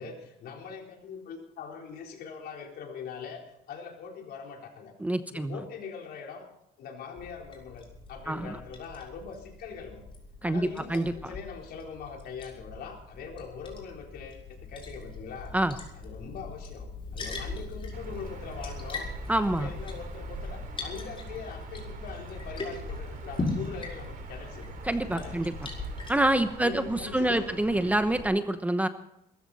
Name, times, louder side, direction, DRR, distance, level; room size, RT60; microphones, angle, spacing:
voice 1, 0.0-4.9 5.3-6.5 6.8-10.1 10.4-15.6 15.9-16.9 17.1-19.3 19.6-25.4 26.4-27.5, left 6 dB, 65° left, 1 dB, 4.1 m, -42 dB
voice 2, 5.0-5.6 8.3-8.6 10.4-11.1 15.5-15.7 19.3-19.7 24.8-25.5 26.1-28.9, right 1 dB, 10° right, 10 dB, 0.9 m, -26 dB
Liquid, 7.2-26.1, left 2 dB, 30° left, 5.1 m, -40 dB
sound 1, 17.9-28.2, right 4 dB, 55° right, 4.2 m, -44 dB
22.0 x 14.0 x 4.2 m, 0.81 s
cardioid pair, 110°, 17 cm